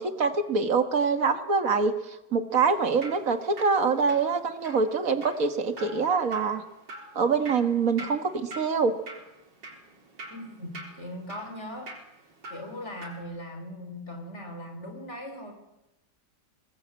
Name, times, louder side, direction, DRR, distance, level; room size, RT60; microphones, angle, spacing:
voice 1, 0.0-1.9 2.3-6.6 7.2-8.9, right 5 dB, 50° right, 8 dB, 2.0 m, -25 dB
Drip, 2.6-13.2, right 2 dB, 85° right, 4.7 m, -46 dB
voice 2, 10.3-12.0 12.5-15.5, left 1 dB, 40° left, 4 dB, 4.5 m, -39 dB
23.0 x 19.5 x 8.3 m, 0.95 s
omnidirectional pair, 1.9 m